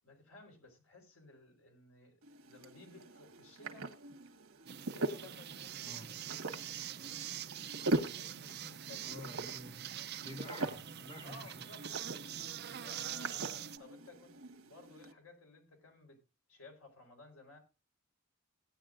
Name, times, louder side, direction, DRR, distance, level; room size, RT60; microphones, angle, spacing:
voice 1, 0.0-4.0 4.9-6.7 7.0-7.4 8.0-9.1 10.5-10.9 11.2-11.8 12.8-16.2 16.5-17.6, left 2 dB, 80° left, 4.1 m, -56 dB
sound 1, 2.2-15.1, right 2 dB, 85° right, 1.3 m, -42 dB
sound 2, 4.7-13.8, right 11 dB, 50° right, 0.5 m, -44 dB
voice 2, 9.0-11.6, equal, 25° left, 1.5 m, -50 dB
17.0 x 9.8 x 2.5 m
head